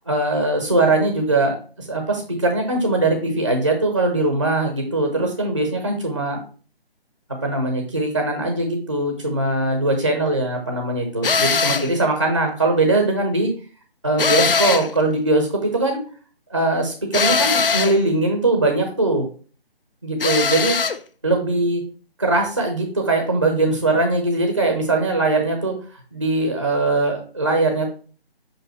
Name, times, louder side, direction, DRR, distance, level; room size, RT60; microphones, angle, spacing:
voice 1, 0.1-6.4 7.4-13.5 14.0-16.0 16.5-19.3 20.0-20.8 21.2-21.8 22.2-25.7 26.1-27.9, right 2 dB, 20° right, 3 dB, 0.6 m, -21 dB
sound 1, 11.2-11.9 14.2-15.0 17.1-18.0 20.2-21.0, left 5 dB, 60° left, 0.5 m, -20 dB
5.8 x 5.3 x 3.1 m, 0.40 s
figure-of-eight pair, 155°, 31 cm